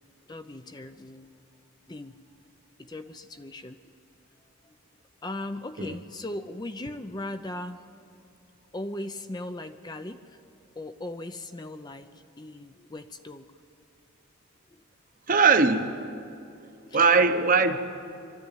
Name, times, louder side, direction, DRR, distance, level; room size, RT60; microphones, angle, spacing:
voice 1, 0.3-1.3 1.9-2.2 2.8-3.8 4.6-4.8 5.2-7.8 8.7-10.4 10.8-13.5 14.7-14.8 16.4-16.5 16.9-17.0, left 1 dB, 20° left, 8 dB, 0.5 m, -38 dB
voice 2, 15.3-15.9 16.9-17.8, right 4 dB, 40° right, 8 dB, 0.9 m, -20 dB
23.5 x 13.5 x 9.1 m, 2.7 s
head